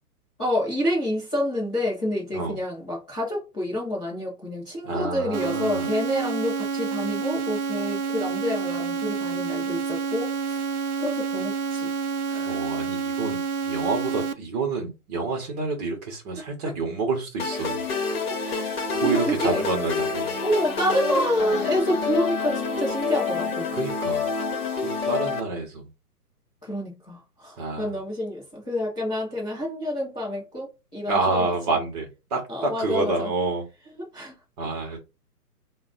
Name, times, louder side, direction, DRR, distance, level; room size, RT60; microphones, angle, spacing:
voice 1, 0.4-10.6 11.0-11.9 12.3-12.7 18.4-19.7 20.4-23.7 26.6-31.5 32.5-33.3 34.0-34.3, equal, 5° left, 0.5 m, -28 dB
voice 2, 4.8-5.9 12.5-17.8 18.9-20.4 23.7-24.3 25.0-25.9 27.6-28.0 31.1-33.6 34.6-35.0, right 3 dB, 25° right, 1.0 m, -28 dB
sound 1, 5.3-14.3, right 5 dB, 65° right, 0.6 m, -28 dB
sound 2, 17.4-25.4, left 4 dB, 40° left, 1.2 m, -28 dB
3.8 x 2.3 x 3.9 m
figure-of-eight pair, 140°, 46 cm